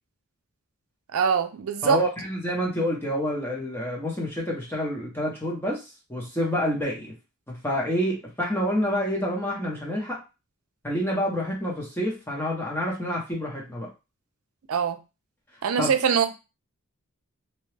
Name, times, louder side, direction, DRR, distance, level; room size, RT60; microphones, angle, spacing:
voice 1, 1.1-2.0 14.7-15.0 15.6-16.3, right 6 dB, 75° right, 0.4 m, -23 dB
voice 2, 1.8-7.1 7.5-10.2 10.8-13.9 15.8-15.9, equal, 10° left, 0.8 m, -28 dB
2.8 x 2.2 x 3.2 m
head